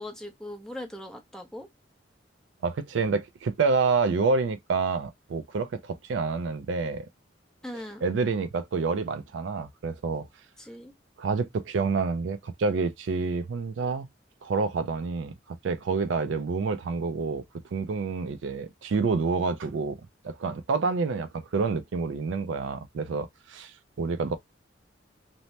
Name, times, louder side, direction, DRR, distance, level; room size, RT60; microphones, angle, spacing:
voice 1, 0.0-1.7 7.6-8.0 10.6-10.9, left 1 dB, 5° left, 0.5 m, -40 dB
voice 2, 2.6-7.1 7.7-10.3 11.2-14.1 14.4-17.4 17.7-20.0 20.2-24.4, right 4 dB, 80° right, 0.4 m, -28 dB
2.8 x 2.0 x 3.1 m
head